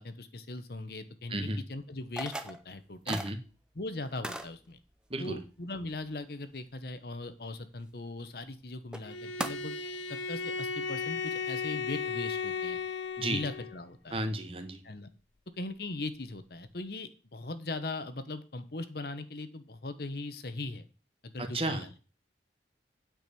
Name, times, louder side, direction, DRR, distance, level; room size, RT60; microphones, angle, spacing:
voice 1, 0.0-1.4 1.7-3.2 3.7-4.8 5.2-9.7 10.1-12.8 13.2-14.2 14.8-15.1 15.6-20.8 21.2-21.9, left 2 dB, 55° left, 11 dB, 1.0 m, -39 dB
sound 1, 2.2-2.6 3.1-3.3 4.2-4.5 8.4-8.5 8.9-9.0 9.4-9.5, right 1 dB, 5° right, 0.7 m, -36 dB
voice 2, 3.1-3.4 5.1-5.4 13.2-13.4 14.1-14.8 21.4-22.0, right 1 dB, 30° right, 7 dB, 1.4 m, -33 dB
Bowed string instrument, 9.0-13.8, left 5 dB, 85° left, 1.0 m, -35 dB
9.3 x 5.2 x 6.9 m, 0.34 s
head